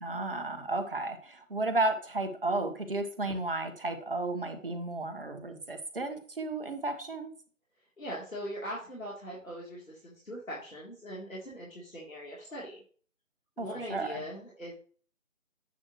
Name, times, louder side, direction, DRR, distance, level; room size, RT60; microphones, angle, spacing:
voice 1, 0.0-7.3 13.6-14.2, right 2 dB, 45° right, 7 dB, 1.2 m, -33 dB
voice 2, 8.0-12.8 13.6-14.7, equal, 75° left, -5 dB, 3.3 m, -41 dB
9.7 x 6.1 x 3.1 m, 0.43 s
figure-of-eight pair, 160°, 40 cm